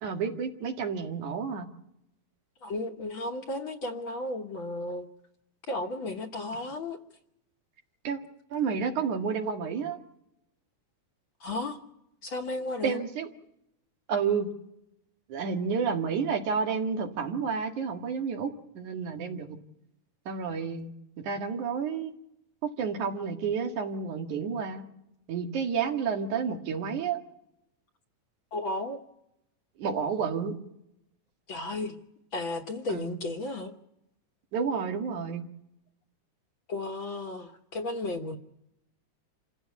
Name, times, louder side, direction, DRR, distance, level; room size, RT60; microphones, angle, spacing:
voice 1, 0.0-1.7 8.0-8.2 8.5-10.0 12.8-13.3 14.1-14.5 15.3-19.6 20.3-20.9 21.2-22.1 22.6-24.8 25.3-27.2 29.8-30.6 32.9-33.2 34.5-35.4, right 6 dB, 85° right, 4 dB, 3.4 m, -30 dB
voice 2, 2.6-5.1 5.7-7.0 11.4-11.8 12.2-13.0 28.5-29.0 31.5-32.0 32.3-33.7 36.7-38.4, left 2 dB, 55° left, 4 dB, 1.6 m, -34 dB
27.5 x 15.5 x 8.3 m, 0.82 s
omnidirectional pair, 3.3 m